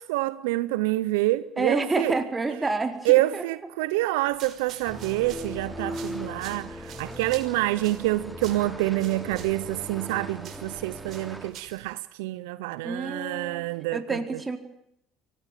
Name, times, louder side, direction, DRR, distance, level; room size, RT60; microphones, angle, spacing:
voice 1, 0.0-2.2 3.0-14.4, right 18 dB, 80° right, 0.9 m, -27 dB
voice 2, 1.6-3.4 12.8-13.6 13.9-14.6, right 3 dB, 20° right, 4.6 m, -28 dB
sound 1, 4.2-11.9, right 9 dB, 55° right, 6.0 m, -48 dB
sound 2, 4.9-11.5, equal, 5° right, 4.6 m, -39 dB
24.5 x 19.0 x 9.3 m
hypercardioid pair, 70°, 0 cm